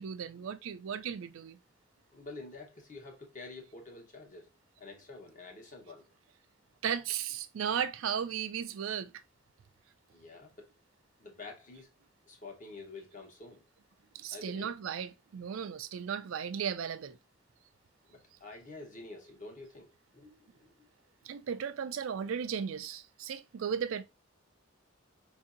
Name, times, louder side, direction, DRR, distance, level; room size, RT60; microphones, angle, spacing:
voice 1, 0.0-1.6 6.8-9.1 14.1-17.2 21.2-24.0, right 7 dB, 75° right, 0.4 m, -35 dB
voice 2, 2.1-4.5 4.8-6.1 10.1-10.7 11.2-11.9 12.3-13.6 14.3-14.7 18.1-20.7, left 3 dB, 40° left, 1.0 m, -48 dB
4.6 x 2.7 x 2.4 m
head